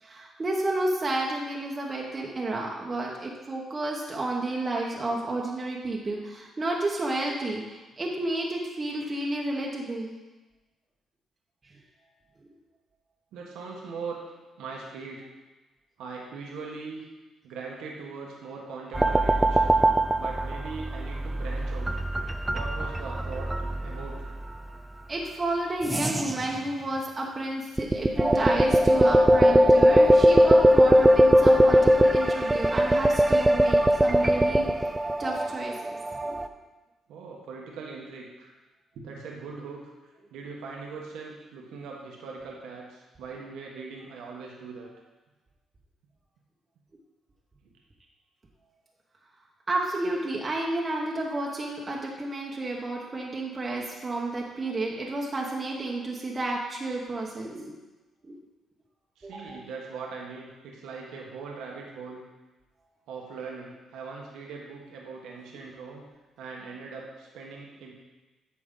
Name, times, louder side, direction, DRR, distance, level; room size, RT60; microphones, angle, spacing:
voice 1, 0.0-10.1 25.1-34.7 35.2-36.4 49.7-57.7 58.2-58.4 59.2-59.6, right 2 dB, 30° right, -2 dB, 1.1 m, -31 dB
voice 2, 13.3-14.2 14.6-15.3 16.0-17.0 17.4-19.8 20.2-22.0 22.5-23.5 23.8-24.3 37.1-38.5 38.9-39.8 40.3-44.9 59.2-62.2 63.1-66.0 66.4-67.9, right 4 dB, 85° right, -1 dB, 1.2 m, -40 dB
sound 1, 18.9-24.6 25.8-26.6 27.8-36.5, equal, 15° right, 0.4 m, -21 dB
8.5 x 6.0 x 3.8 m, 1.1 s
cardioid pair, 90°, 0 cm